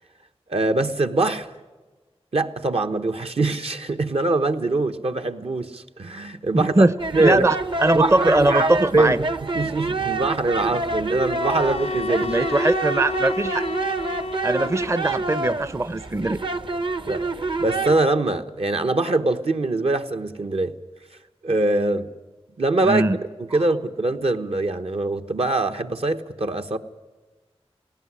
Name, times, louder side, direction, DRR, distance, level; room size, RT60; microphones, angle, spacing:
voice 1, 0.5-1.5 2.3-6.9 7.1-7.5 7.9-9.2 9.5-12.4 17.1-17.3 17.6-20.8 21.4-22.1 22.6-26.8, right 2 dB, 65° right, 7 dB, 1.1 m, -23 dB
voice 2, 6.5-6.9 7.2-9.2 12.2-13.7 14.4-16.4 22.8-23.2, right 2 dB, 25° right, 14 dB, 0.6 m, -20 dB
sound 1, 7.0-18.0, right 3 dB, 50° right, 0.9 m, -27 dB
sound 2, 11.4-15.3, left 3 dB, 85° left, 0.7 m, -31 dB
18.5 x 17.5 x 9.6 m, 1.3 s
wide cardioid pair, 65°, 11 cm